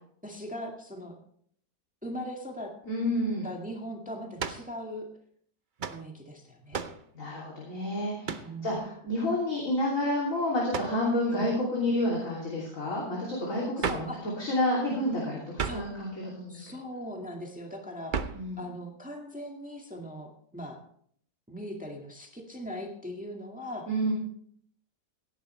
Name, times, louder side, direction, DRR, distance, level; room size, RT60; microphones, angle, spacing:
voice 1, 0.2-1.1 2.0-2.7 3.4-5.1 5.9-6.8 8.4-8.8 11.3-11.5 13.8-14.2 15.6-15.8 16.5-18.3 18.6-20.8 21.5-23.9, equal, 5° right, 1 dB, 1.8 m, -40 dB
voice 2, 2.9-3.5 7.1-16.6 18.3-18.6 23.9-24.1, left 1 dB, 45° left, -4 dB, 3.5 m, -29 dB
sound 1, 4.4-4.7 5.8-6.0 6.7-7.0 8.2-8.5 10.7-11.0 13.8-14.2 15.6-15.9 18.1-18.5, right 6 dB, 70° right, 0.4 m, -33 dB
17.0 x 10.5 x 3.3 m, 0.62 s
omnidirectional pair, 1.9 m